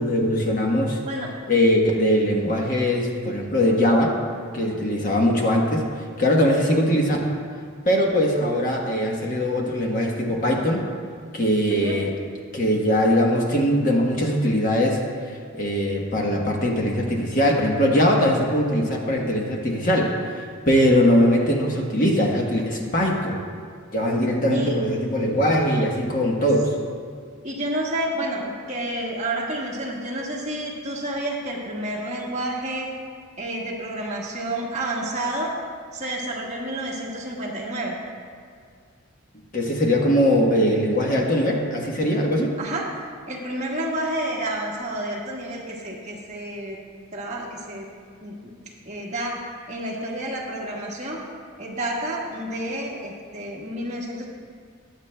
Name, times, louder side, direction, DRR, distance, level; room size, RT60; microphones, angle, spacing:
voice 1, 0.0-1.0 1.5-4.2 4.5-5.8 6.2-7.2 7.8-10.8 11.3-12.1 12.5-23.4 23.9-26.7 39.5-42.5, equal, 40° left, -1 dB, 1.1 m, -21 dB
voice 2, 27.4-32.9 33.4-35.5 35.9-37.9 42.6-42.9 43.3-46.8 47.1-47.9 48.2-48.5 48.8-49.4 49.7-51.2 51.6-54.2, right 1 dB, 30° right, -4 dB, 1.6 m, -30 dB
21.0 x 8.0 x 2.2 m, 2.1 s
head